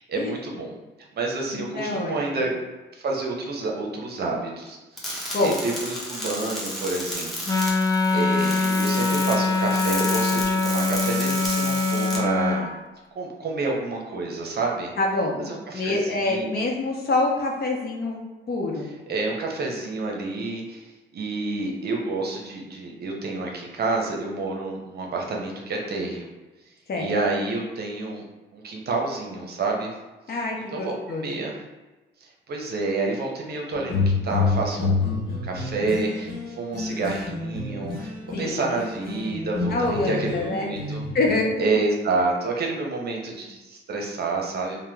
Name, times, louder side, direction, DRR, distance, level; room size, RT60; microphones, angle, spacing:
voice 1, 0.1-0.8 1.1-2.5 2.9-7.6 8.1-12.7 13.1-14.9 15.4-16.7 19.1-26.3 27.0-28.2 28.5-29.9 30.7-31.6 32.2-41.0 41.6-44.8, right 3 dB, 55° right, 0 dB, 0.7 m, -29 dB
voice 2, 1.5-2.2 5.3-5.6 15.0-15.5 15.7-18.2 18.5-18.9 26.9-27.1 30.3-31.3 38.3-38.8 39.7-40.7 41.1-41.5, left 2 dB, 50° left, 0 dB, 0.8 m, -26 dB
sound 1, 5.0-12.2, equal, ahead, 0.9 m, -33 dB
Wind instrument woodwind instrument, 7.5-12.7, left 3 dB, 20° left, 0.4 m, -23 dB
sound 2, 33.7-38.5 38.8-41.3, left 3 dB, 85° left, 1.1 m, -28 dB
2.9 x 2.2 x 3.4 m, 1.2 s
cardioid pair, 90°, 20 cm